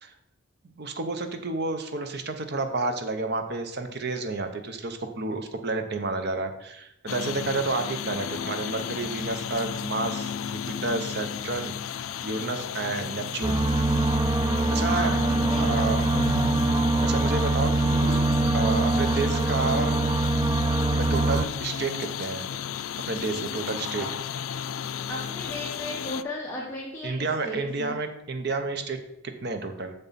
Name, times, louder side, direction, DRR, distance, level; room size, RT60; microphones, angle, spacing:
voice 1, 0.8-13.6 14.7-15.1 15.5-16.1 17.0-18.2 18.5-20.0 20.9-22.4 23.1-24.1 27.0-29.9, right 3 dB, 55° right, 7 dB, 0.8 m, -30 dB
sound 1, 7.1-26.2, left 8 dB, 90° left, 0.4 m, -34 dB
sound 2, 13.4-21.4, right 2 dB, 20° right, 0.3 m, -23 dB
voice 2, 14.9-16.3 24.0-24.1 25.1-27.9, left 1 dB, 15° left, -5 dB, 1.2 m, -35 dB
7.0 x 6.9 x 4.2 m, 0.81 s
head